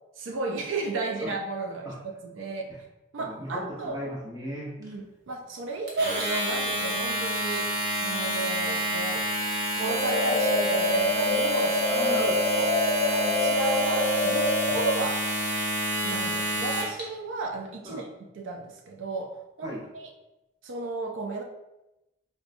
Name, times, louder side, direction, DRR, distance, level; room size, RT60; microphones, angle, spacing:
voice 1, 0.2-2.7 3.1-4.0 4.8-9.3 9.7-12.1 12.5-12.7 13.0-15.3 16.0-18.1 18.3-20.1 20.6-21.4, right 3 dB, 80° right, 3 dB, 0.4 m, -33 dB
voice 2, 3.3-4.9 11.9-12.4 17.8-18.0 19.6-19.8, equal, 20° right, -5 dB, 0.8 m, -36 dB
Domestic sounds home sounds, 5.9-17.0, right 1 dB, 55° right, 0.9 m, -29 dB
sound 1, 9.9-14.9, left 2 dB, 80° left, 0.5 m, -26 dB
4.2 x 2.2 x 2.5 m, 0.93 s
head